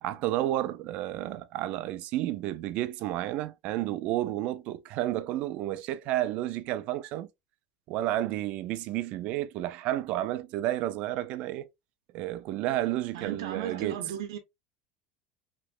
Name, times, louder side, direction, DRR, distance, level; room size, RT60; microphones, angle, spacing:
voice 1, 0.0-7.3 7.9-11.7 12.1-14.0, right 14 dB, 50° right, 0.4 m, -31 dB
voice 2, 13.1-14.4, right 9 dB, 85° right, 0.7 m, -35 dB
3.1 x 2.9 x 2.4 m
supercardioid pair, 140°, 3 cm